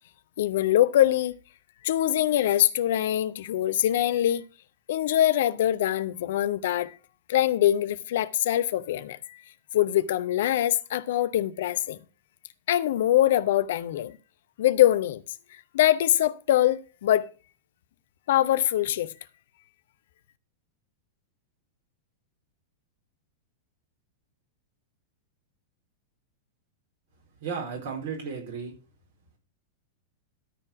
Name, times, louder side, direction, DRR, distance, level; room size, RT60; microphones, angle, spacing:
voice 1, 0.4-1.4 1.8-4.4 4.9-6.9 7.3-9.4 9.7-12.0 12.7-14.1 14.6-15.2 15.7-17.3 18.3-19.1, left 12 dB, 55° left, 0.7 m, -23 dB
voice 2, 27.4-28.7, right 6 dB, 55° right, 4.2 m, -34 dB
13.0 x 4.5 x 5.9 m
figure-of-eight pair, 95°, 0 cm